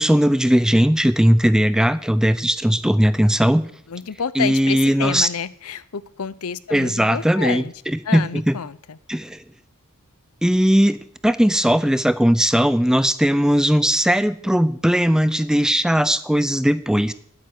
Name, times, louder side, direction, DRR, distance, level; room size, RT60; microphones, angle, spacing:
voice 1, 0.0-3.7 4.4-5.3 6.7-8.5 9.1-9.4 10.4-17.1, equal, 5° right, 15 dB, 0.5 m, -18 dB
voice 2, 3.9-7.7 8.0-9.0, left 6 dB, 70° left, 18 dB, 0.6 m, -29 dB
9.5 x 9.1 x 9.6 m, 0.64 s
head